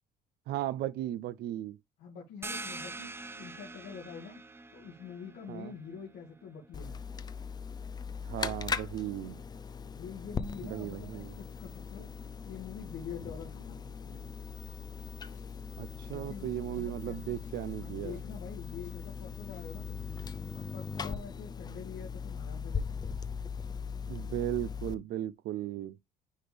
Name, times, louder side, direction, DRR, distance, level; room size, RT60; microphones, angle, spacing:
voice 1, 0.5-1.8 5.5-5.7 8.2-9.4 10.6-11.4 15.8-18.2 24.1-26.0, right 13 dB, 75° right, 0.5 m, -36 dB
voice 2, 2.0-4.4 4.7-7.0 9.8-12.1 12.4-14.3 16.1-17.4 17.8-20.2 20.5-23.2, left 6 dB, 75° left, 2.4 m, -46 dB
sound 1, 2.4-7.8, right 3 dB, 15° right, 0.7 m, -45 dB
sound 2, 6.7-24.9, left 5 dB, 25° left, 0.5 m, -40 dB
Drum kit, 15.0-20.6, left 5 dB, 45° left, 2.1 m, -62 dB
9.7 x 3.4 x 3.4 m
cardioid pair, 110°, 17 cm